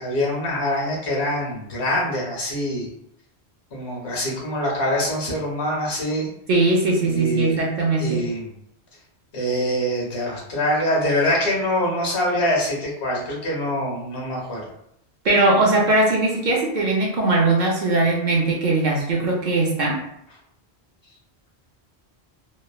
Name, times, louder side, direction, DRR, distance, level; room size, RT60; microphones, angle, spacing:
voice 1, 0.0-2.9 3.7-6.3 7.1-7.6 8.0-8.5 9.3-14.6, left 1 dB, 85° left, -2 dB, 1.1 m, -24 dB
voice 2, 6.5-8.2 15.2-20.0, right 2 dB, 55° right, -2 dB, 0.6 m, -20 dB
3.0 x 2.0 x 2.3 m, 0.77 s
omnidirectional pair, 1.1 m